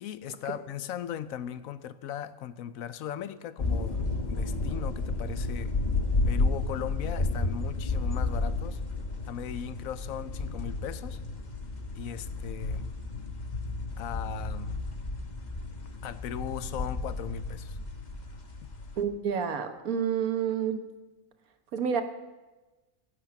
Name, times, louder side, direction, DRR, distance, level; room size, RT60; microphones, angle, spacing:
voice 1, 0.0-5.7 6.3-8.8 9.3-11.2 12.0-12.9 14.0-14.7 16.0-17.8, left 10 dB, 75° left, 14 dB, 1.1 m, -38 dB
sound 1, 3.6-19.0, left 3 dB, 35° left, 1.2 m, -32 dB
voice 2, 19.0-20.8 21.7-22.0, right 7 dB, 90° right, 7 dB, 1.6 m, -29 dB
16.0 x 10.0 x 5.8 m, 1.2 s
omnidirectional pair, 1.5 m